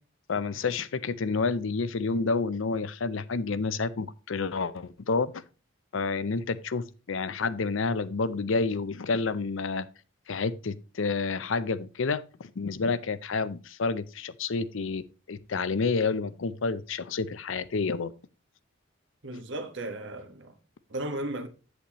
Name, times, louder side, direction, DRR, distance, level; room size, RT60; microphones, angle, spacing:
voice 1, 0.3-5.3 5.9-9.9 10.3-18.1, left 4 dB, 70° left, 0.6 m, -29 dB
voice 2, 19.2-20.5 20.9-21.5, right 1 dB, 65° right, 1.4 m, -35 dB
8.4 x 8.1 x 3.0 m
head